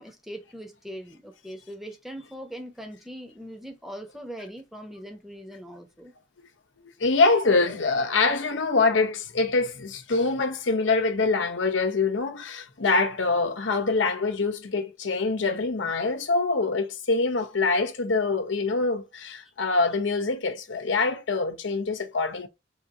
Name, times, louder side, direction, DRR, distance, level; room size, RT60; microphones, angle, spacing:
voice 1, 0.0-6.1, equal, ahead, 0.8 m, -41 dB
voice 2, 7.0-22.5, left 3 dB, 80° left, 0.8 m, -24 dB
3.6 x 2.7 x 4.6 m
head